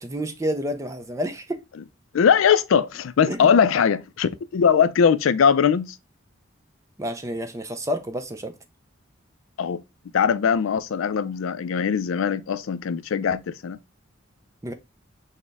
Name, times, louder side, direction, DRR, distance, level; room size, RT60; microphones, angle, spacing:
voice 1, 0.0-1.6 3.3-3.5 7.0-8.5 14.6-14.7, equal, 15° right, 0.4 m, -29 dB
voice 2, 2.1-6.0 9.6-9.8 10.1-13.8, left 7 dB, 85° left, 0.4 m, -20 dB
6.2 x 2.1 x 3.4 m
head